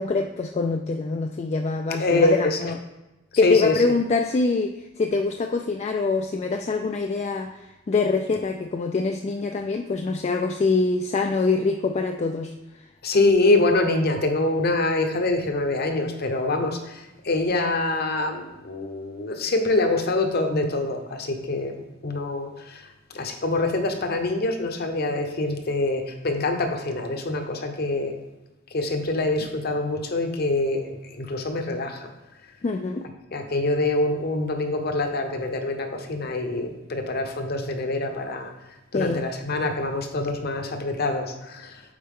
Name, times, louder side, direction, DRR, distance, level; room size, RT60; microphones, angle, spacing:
voice 1, 0.0-2.8 3.4-7.6 7.9-12.5 32.6-33.0 38.9-39.2, left 4 dB, 35° left, 4 dB, 0.3 m, -24 dB
voice 2, 2.0-2.7 3.4-4.0 13.0-21.7 22.0-28.1 28.7-32.1 33.3-38.5 38.9-41.8, left 2 dB, 55° left, 5 dB, 0.9 m, -25 dB
8.6 x 4.2 x 3.7 m, 1.0 s
head